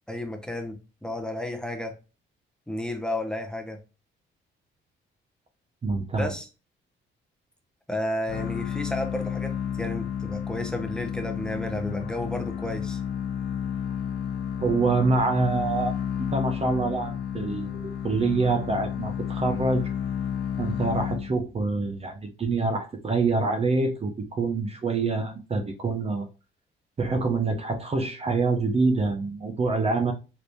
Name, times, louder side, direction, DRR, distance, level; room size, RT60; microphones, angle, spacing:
voice 1, 0.1-0.8 1.0-1.9 2.7-3.8 6.1-6.5 7.9-13.0, left 1 dB, 5° left, 0.8 m, -32 dB
voice 2, 5.8-6.3 14.6-19.9 20.6-26.3 27.0-30.1, right 3 dB, 30° right, 0.6 m, -26 dB
sound 1, 8.3-21.7, left 8 dB, 55° left, 0.6 m, -31 dB
3.4 x 2.8 x 2.6 m
cardioid pair, 90°, 20 cm